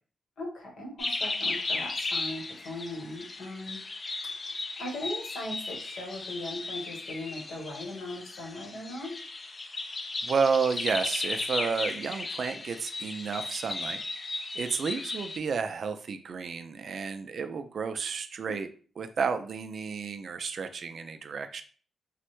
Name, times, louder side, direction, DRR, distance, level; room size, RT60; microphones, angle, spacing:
voice 1, 0.4-3.8 4.8-9.2 18.5-18.6, left 2 dB, 80° left, -1 dB, 1.0 m, -39 dB
sound 1, 1.0-15.4, left 3 dB, 35° left, 0.4 m, -35 dB
voice 2, 10.2-14.0 14.6-18.7 19.0-21.6, right 5 dB, 60° right, 9 dB, 0.3 m, -31 dB
3.1 x 2.1 x 3.0 m, 0.42 s
cardioid pair, 85°, 0 cm